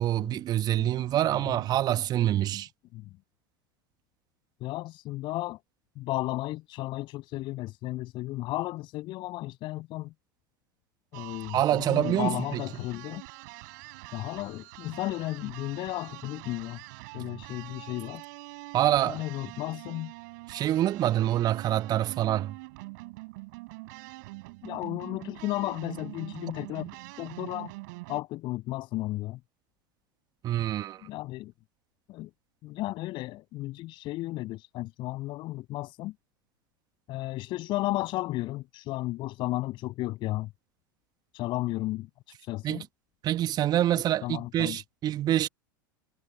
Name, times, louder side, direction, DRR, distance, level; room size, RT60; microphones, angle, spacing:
voice 1, 0.0-2.7 11.5-12.6 18.7-19.2 20.5-22.6 30.4-31.0 42.6-42.8 43.2-45.5, right 12 dB, 35° right, 1.6 m, -26 dB
voice 2, 4.6-5.6 6.0-10.1 11.1-13.2 14.1-16.8 17.1-18.2 19.1-20.1 24.6-26.9 27.2-27.7 28.1-29.4 31.0-31.5 32.1-32.3 32.6-36.1 37.1-40.5 41.3-42.1 42.4-42.8 44.2-44.8, left 18 dB, 45° left, 7.5 m, -34 dB
sound 1, 11.1-28.2, right 25 dB, 55° right, 6.5 m, -44 dB
figure-of-eight pair, 80°, 11 cm